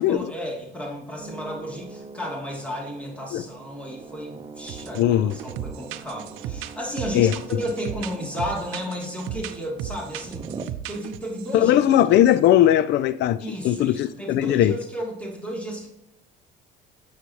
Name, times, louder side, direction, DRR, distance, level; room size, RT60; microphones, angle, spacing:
voice 1, 0.0-11.7 13.4-15.9, equal, 5° left, 2.6 m, -33 dB
sound 1, 1.2-10.7, right 4 dB, 25° right, 0.8 m, -42 dB
sound 2, 4.7-5.0 5.3-11.5 11.9-12.5, right 11 dB, 80° right, 0.6 m, -36 dB
voice 2, 5.0-5.3 7.1-7.3 11.5-14.7, left 12 dB, 60° left, 0.4 m, -19 dB
8.2 x 6.5 x 2.9 m
supercardioid pair, 85°, 20 cm